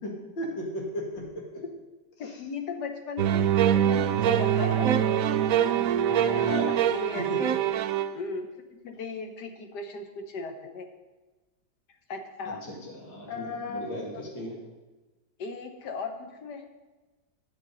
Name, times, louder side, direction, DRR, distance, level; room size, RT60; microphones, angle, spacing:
voice 1, 0.0-1.6 2.2-2.3 6.3-6.8 7.1-7.4 12.6-14.6, left 1 dB, 90° left, -1 dB, 2.8 m, -36 dB
voice 2, 2.2-5.7 6.1-6.6 6.9-7.6 8.1-10.9 12.1-12.6 13.3-14.2 15.4-16.7, left 4 dB, 65° left, 6 dB, 1.6 m, -37 dB
sound 1, 3.2-8.1, right 9 dB, 80° right, 0.7 m, -24 dB
10.0 x 7.9 x 5.3 m, 1.2 s
omnidirectional pair, 2.0 m